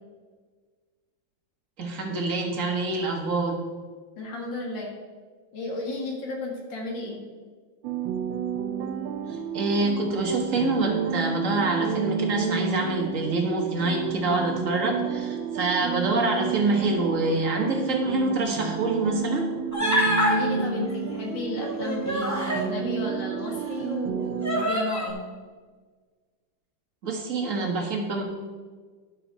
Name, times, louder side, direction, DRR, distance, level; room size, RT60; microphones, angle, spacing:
voice 1, 1.8-3.6 9.3-19.5 27.0-28.2, right 2 dB, 45° right, 1 dB, 1.7 m, -26 dB
voice 2, 4.2-4.9 5.5-7.2 20.3-25.2, left 2 dB, 75° left, -1 dB, 2.5 m, -33 dB
sound 1, 7.8-24.7, right 7 dB, 85° right, 1.4 m, -31 dB
Human voice, 19.7-20.4 21.6-22.7 23.5-23.6 24.4-25.1, equal, 10° left, 2.0 m, -25 dB
11.0 x 6.8 x 4.1 m, 1.5 s
omnidirectional pair, 2.1 m